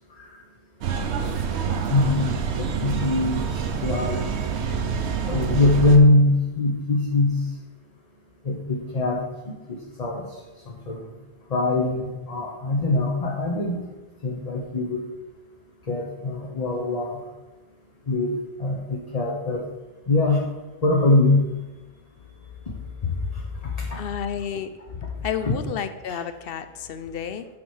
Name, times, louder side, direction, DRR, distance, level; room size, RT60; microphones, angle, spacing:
sound 1, 0.8-6.0, right 6 dB, 85° right, 1.0 m, -27 dB
voice 1, 1.9-3.5 3.8-4.2 5.3-7.4 8.4-10.4 10.7-11.0 11.5-13.8 14.2-15.0 15.9-17.2 18.1-19.6 20.1-20.5 20.8-21.4 23.0-24.0 25.4-25.5, left 2 dB, 40° left, -1 dB, 1.0 m, -22 dB
voice 2, 23.9-24.7 25.2-27.5, left 8 dB, 65° left, 10 dB, 0.8 m, -31 dB
8.5 x 4.4 x 6.4 m, 1.1 s
omnidirectional pair, 1.1 m